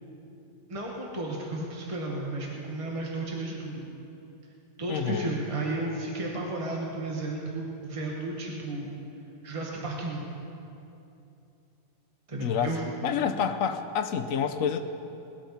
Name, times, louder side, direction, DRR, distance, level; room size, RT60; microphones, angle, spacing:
voice 1, 0.7-3.8 4.8-8.9 9.4-10.2 12.3-12.8, right 2 dB, 25° right, -3 dB, 1.6 m, -33 dB
voice 2, 4.9-5.3 12.4-12.7 13.0-14.8, left 7 dB, 80° left, 6 dB, 1.1 m, -28 dB
20.0 x 12.5 x 4.2 m, 2.8 s
omnidirectional pair, 1.4 m